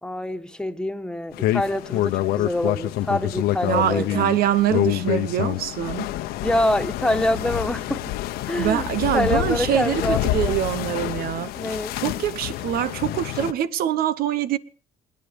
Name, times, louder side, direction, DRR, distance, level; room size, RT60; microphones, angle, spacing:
voice 1, 0.0-4.2 6.4-8.1 8.5-8.9 9.1-10.6 11.5-12.0, left 1 dB, 5° left, 1.7 m, -26 dB
sound 1, 1.3-13.5, left 14 dB, 85° left, 1.0 m, -27 dB
voice 2, 3.7-6.1 8.6-11.5 12.0-14.6, right 11 dB, 75° right, 1.0 m, -24 dB
27.0 x 9.6 x 5.3 m
supercardioid pair, 80°, 16 cm